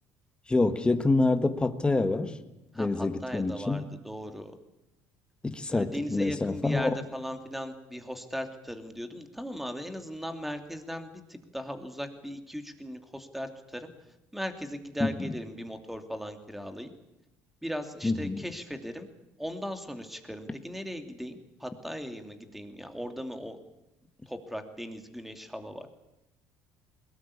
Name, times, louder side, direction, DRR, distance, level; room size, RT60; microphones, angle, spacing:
voice 1, 0.5-2.4 2.8-3.9 5.4-7.0 15.0-15.3 18.0-18.4, left 3 dB, 15° left, 8 dB, 1.6 m, -27 dB
voice 2, 2.7-4.5 5.7-13.9 14.3-16.9 17.6-19.1 19.4-23.6 24.3-25.9, equal, 5° right, 7 dB, 2.7 m, -38 dB
21.0 x 18.5 x 8.6 m, 0.91 s
cardioid pair, 100°, 6 cm